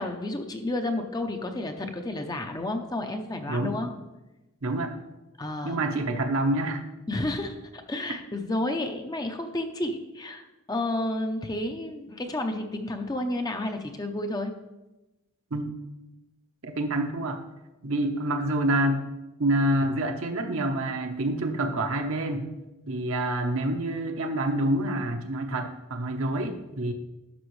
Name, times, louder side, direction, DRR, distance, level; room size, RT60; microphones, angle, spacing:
voice 1, 0.0-3.9 5.4-5.8 7.1-14.5, left 1 dB, 20° left, 5 dB, 0.6 m, -31 dB
voice 2, 3.5-3.8 4.6-4.9 5.6-6.8 15.5-15.7 16.6-17.4 17.8-19.0 19.4-22.5 22.9-26.9, right 1 dB, 65° right, 4 dB, 0.9 m, -27 dB
11.0 x 6.2 x 3.2 m, 1.0 s
head